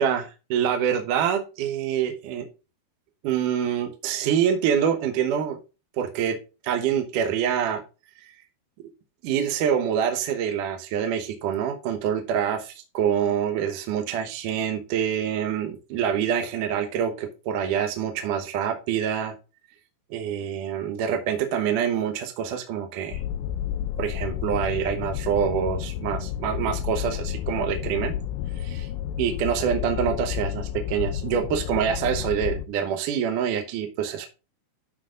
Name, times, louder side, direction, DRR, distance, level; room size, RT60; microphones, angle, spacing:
voice 1, 0.0-2.5 3.2-5.6 5.9-6.4 6.6-7.8 8.2-8.4 9.2-19.3 20.1-23.2 24.0-28.1 28.5-28.9 29.2-34.3, right 8 dB, 70° right, 6 dB, 2.1 m, -26 dB
sound 1, 23.1-32.7, left 10 dB, 90° left, 2.1 m, -31 dB
11.5 x 4.5 x 3.7 m, 0.30 s
omnidirectional pair, 4.9 m